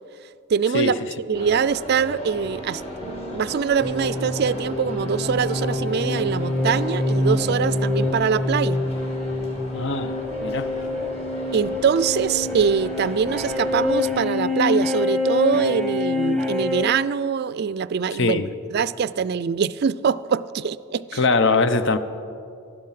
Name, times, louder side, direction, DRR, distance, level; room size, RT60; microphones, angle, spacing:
voice 1, 0.5-2.8 3.1-8.8 11.5-18.4 18.7-21.2, right 6 dB, 50° right, 17 dB, 0.4 m, -23 dB
sound 1, 1.3-14.0, equal, 30° left, 2.5 m, -36 dB
sound 2, 3.8-16.8, left 2 dB, 5° left, 1.3 m, -26 dB
voice 2, 9.7-10.2 10.4-10.7 18.2-18.5 21.1-22.0, left 3 dB, 60° left, 11 dB, 0.7 m, -21 dB
19.0 x 12.5 x 5.7 m, 2.5 s
head